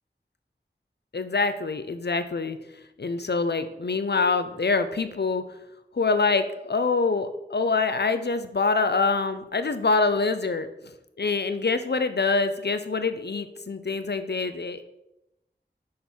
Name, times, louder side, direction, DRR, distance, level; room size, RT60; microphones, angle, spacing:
voice 1, 1.1-2.6 3.0-5.4 5.9-10.7 11.2-14.9, left 4 dB, 65° left, 10 dB, 0.6 m, -25 dB
6.6 x 5.4 x 4.4 m, 0.88 s
wide cardioid pair, 40°, 19 cm